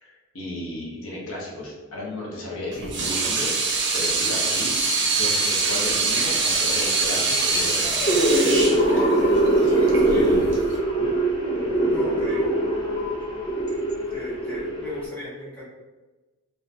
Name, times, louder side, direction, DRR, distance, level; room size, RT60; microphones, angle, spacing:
voice 1, 0.0-3.7 3.9-4.7 5.0-8.2 8.8-8.9 10.1-10.4 11.0-11.1, left 1 dB, 75° left, -4 dB, 0.7 m, -34 dB
Water tap faucet / Sink (filling or washing), 2.7-10.8, right 3 dB, 55° right, 0.4 m, -24 dB
sound 1, 7.8-15.1, right 1 dB, 25° left, 0.3 m, -22 dB
voice 2, 9.7-10.3 11.7-12.6 14.1-15.6, left 1 dB, 5° left, -10 dB, 0.8 m, -35 dB
2.7 x 2.1 x 2.5 m, 1.2 s
head